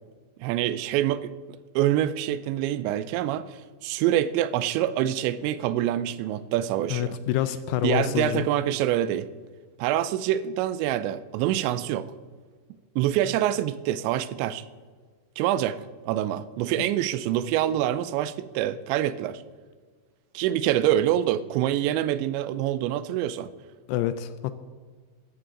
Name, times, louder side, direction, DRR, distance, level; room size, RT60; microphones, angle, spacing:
voice 1, 0.4-1.3 1.8-3.5 3.8-7.2 7.8-9.3 9.8-12.1 13.0-14.6 15.4-19.4 20.3-23.5, right 12 dB, 85° right, 2.9 m, -26 dB
voice 2, 6.9-8.5 23.9-24.5, left 12 dB, 85° left, 2.5 m, -27 dB
14.5 x 13.5 x 3.8 m
omnidirectional pair, 5.1 m